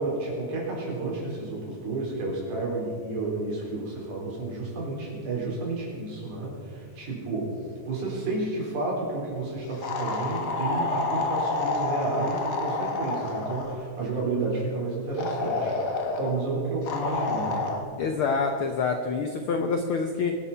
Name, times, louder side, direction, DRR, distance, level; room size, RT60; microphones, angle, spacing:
voice 1, 0.0-7.5 7.9-15.8 16.2-17.8, right 3 dB, 80° right, -3 dB, 5.6 m, -31 dB
sound 1, 9.8-13.8 15.2-16.3 16.9-17.8, left 3 dB, 45° left, 1.4 m, -29 dB
voice 2, 18.0-20.4, left 4 dB, 75° left, 6 dB, 1.2 m, -26 dB
24.0 x 8.4 x 5.6 m, 2.1 s
omnidirectional pair, 3.5 m